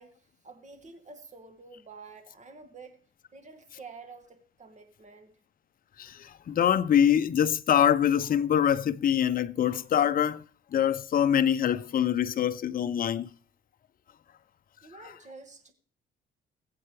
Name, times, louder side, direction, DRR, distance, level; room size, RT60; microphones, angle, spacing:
voice 1, 0.0-3.0 3.3-5.4 14.8-15.7, right 4 dB, 35° right, 2.3 m, -49 dB
voice 2, 6.0-10.4 10.7-13.3, left 9 dB, 45° left, 0.6 m, -24 dB
21.5 x 7.7 x 3.4 m
cardioid pair, 90°, 20 cm